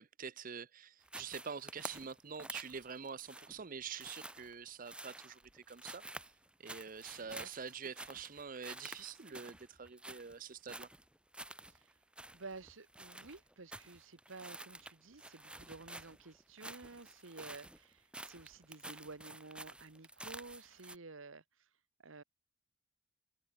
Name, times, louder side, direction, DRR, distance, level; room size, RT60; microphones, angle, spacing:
voice 1, 0.0-6.0 6.6-10.9, right 6 dB, 45° right, 0.7 m, -46 dB
sound 1, 1.0-21.0, right 2 dB, 5° right, 1.1 m, -50 dB
voice 2, 12.3-21.4 22.0-22.2, right 3 dB, 80° right, 1.4 m, -52 dB
head